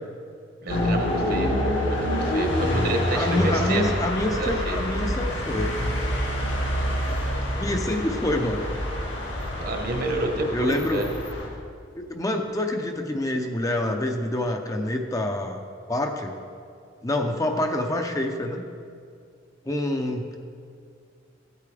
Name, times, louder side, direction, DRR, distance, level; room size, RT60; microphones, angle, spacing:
voice 1, 0.6-1.5 1.8-3.9 4.3-4.8 9.6-11.1, right 2 dB, 55° right, 2 dB, 1.3 m, -29 dB
sound 1, 0.7-11.5, equal, 90° left, 2.2 m, -27 dB
voice 2, 3.1-5.8 7.6-8.6 10.5-11.0 12.1-15.6 15.9-16.3 17.0-18.6 19.7-20.4, left 1 dB, 20° left, 4 dB, 0.6 m, -26 dB
14.5 x 8.5 x 3.4 m, 2.3 s
head